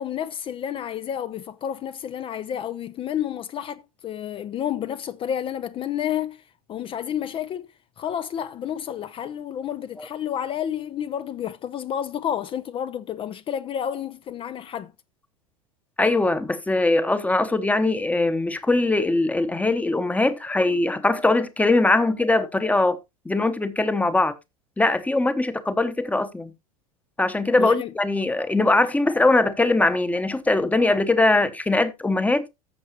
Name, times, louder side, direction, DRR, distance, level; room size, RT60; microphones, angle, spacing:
voice 1, 0.0-6.4 6.7-7.7 8.0-14.9 27.6-27.9, left 9 dB, 30° left, 0.5 m, -30 dB
voice 2, 16.0-23.0 23.2-24.3 24.8-26.5 27.2-32.4, left 2 dB, 10° left, 1.0 m, -21 dB
14.0 x 6.5 x 2.9 m
figure-of-eight pair, 85°, 19 cm